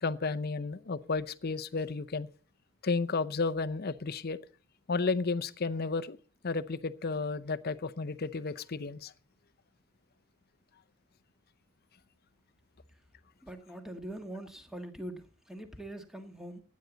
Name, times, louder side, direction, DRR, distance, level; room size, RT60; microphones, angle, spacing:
voice 1, 0.0-2.3 2.8-4.4 4.9-6.2 6.4-9.1, left 4 dB, 45° left, 0.6 m, -32 dB
voice 2, 13.4-16.6, right 1 dB, ahead, 1.5 m, -43 dB
16.0 x 9.6 x 3.9 m
head